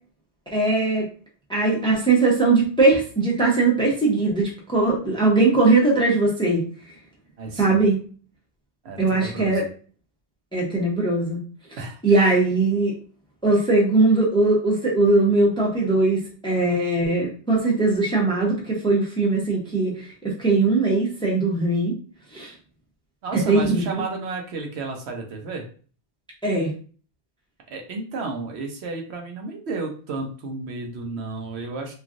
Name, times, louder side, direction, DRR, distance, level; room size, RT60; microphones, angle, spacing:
voice 1, 0.5-1.1 1.5-6.6 7.6-8.0 9.0-9.6 10.5-11.4 12.0-12.9 13.4-21.9 22.3-22.5 23.5-23.8 26.4-26.7, right 3 dB, 5° left, -2 dB, 0.6 m, -20 dB
voice 2, 7.4-7.8 8.8-9.7 11.8-12.4 23.2-25.7 27.7-31.9, right 3 dB, 75° right, 2 dB, 0.9 m, -32 dB
3.1 x 2.3 x 2.5 m, 0.41 s
omnidirectional pair, 1.1 m